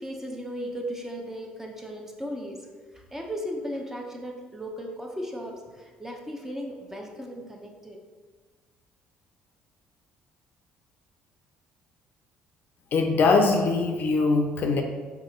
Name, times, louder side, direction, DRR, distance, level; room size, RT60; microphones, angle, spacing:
voice 1, 0.0-2.7 2.9-8.0, equal, 10° right, 1 dB, 0.8 m, -36 dB
voice 2, 12.9-14.8, left 3 dB, 55° left, 4 dB, 0.5 m, -22 dB
4.1 x 2.8 x 3.8 m, 1.4 s
hypercardioid pair, 60°, 4 cm